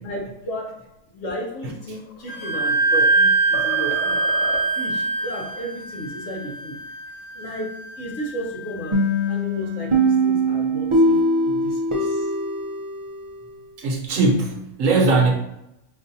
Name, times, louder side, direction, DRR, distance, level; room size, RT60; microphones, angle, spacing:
voice 1, 0.0-4.2 4.8-6.8 7.3-9.0 9.3-12.3, equal, 65° left, -3 dB, 1.3 m, -34 dB
sound 1, 1.8-3.2 3.5-4.9, left 3 dB, 85° left, 1.1 m, -35 dB
Wind instrument woodwind instrument, 2.3-9.7, right 3 dB, 40° left, 0.9 m, -24 dB
sound 2, 8.9-13.6, right 1 dB, 45° right, 0.4 m, -21 dB
voice 2, 13.8-15.3, right 3 dB, 70° right, -1 dB, 1.1 m, -19 dB
5.0 x 2.5 x 2.6 m, 0.84 s
omnidirectional pair, 1.4 m